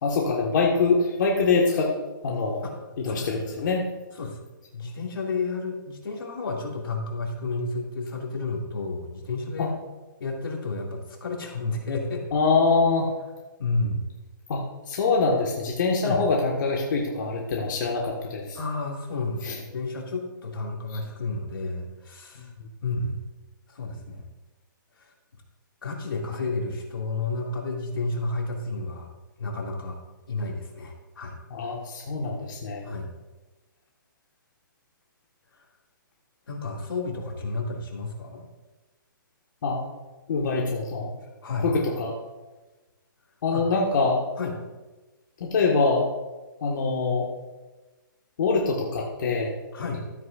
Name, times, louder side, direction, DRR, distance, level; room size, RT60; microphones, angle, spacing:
voice 1, 0.0-1.9 2.2-2.6 3.0-3.9 9.6-9.7 12.3-13.1 14.5-18.6 19.4-19.6 22.4-22.7 31.5-32.8 39.6-39.8 40.3-41.1 41.6-42.1 43.4-44.2 45.4-46.0 46.6-47.3 48.4-49.5, left 4 dB, 60° left, -2 dB, 1.6 m, -24 dB
voice 2, 3.1-3.6 4.1-4.4 4.7-9.7 10.2-12.3 13.6-14.0 16.0-16.2 18.5-22.5 22.8-23.3 23.7-24.2 25.0-25.1 25.8-29.1 29.4-30.0 30.3-31.4 32.8-33.1 35.5-35.6 36.5-38.4 41.4-41.7 43.5-43.6 44.4-44.5 49.7-50.0, left 3 dB, 85° left, 0 dB, 2.3 m, -31 dB
13.5 x 9.2 x 2.5 m, 1.2 s
hypercardioid pair, 150°, 11 cm